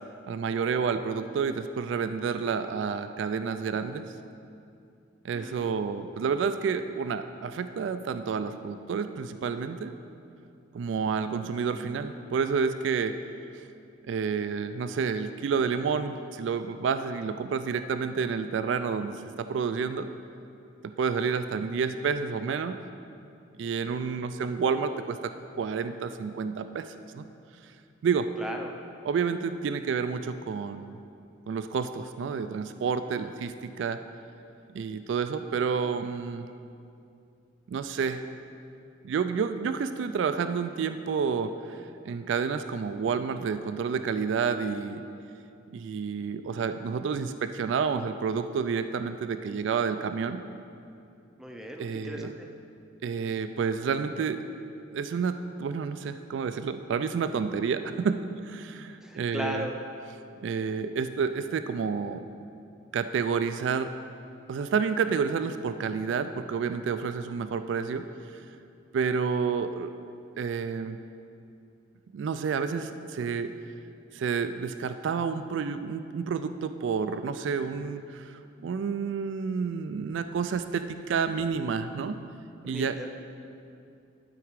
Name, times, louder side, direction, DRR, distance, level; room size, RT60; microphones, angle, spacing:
voice 1, 0.3-4.0 5.2-9.9 10.7-13.2 14.1-20.1 20.8-22.8 23.6-27.3 28.0-28.3 29.0-31.0 31.5-34.0 34.7-36.5 37.7-38.2 39.0-45.0 45.7-50.4 51.8-52.3 53.0-54.4 54.9-59.7 60.4-62.2 62.9-63.9 64.5-68.0 68.9-69.9 70.4-71.0 72.1-73.5 74.1-78.3 78.6-82.2 82.6-83.0, right 6 dB, 65° right, 10 dB, 0.3 m, -29 dB
voice 2, 5.3-5.8 28.4-28.7 51.4-52.5 59.0-59.7 82.7-83.1, equal, 5° right, 2 dB, 0.5 m, -37 dB
11.5 x 4.8 x 4.7 m, 2.5 s
head